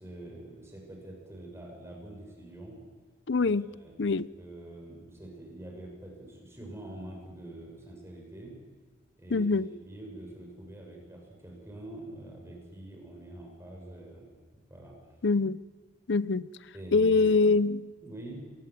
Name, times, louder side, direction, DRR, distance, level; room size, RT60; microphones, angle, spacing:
voice 1, 0.0-2.8 3.3-8.6 9.2-14.3 14.7-15.0 16.7-17.4 18.0-18.4, right 1 dB, 15° right, 6.8 m, -45 dB
voice 2, 3.3-3.7 4.0-4.3 9.3-9.7 15.2-15.6 16.1-16.5 16.9-17.9, left 3 dB, 60° left, 0.6 m, -24 dB
25.5 x 20.5 x 7.6 m
head